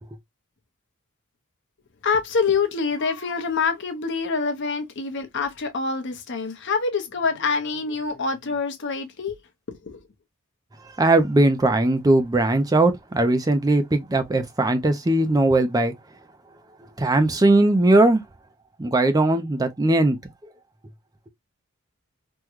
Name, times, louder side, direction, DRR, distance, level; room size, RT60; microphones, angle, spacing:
voice 1, 2.0-9.4 9.8-10.0, left 5 dB, 55° left, 0.7 m, -26 dB
voice 2, 11.0-15.9 17.0-18.2 18.8-20.2, right 2 dB, 15° right, 0.4 m, -19 dB
3.5 x 2.1 x 3.0 m
head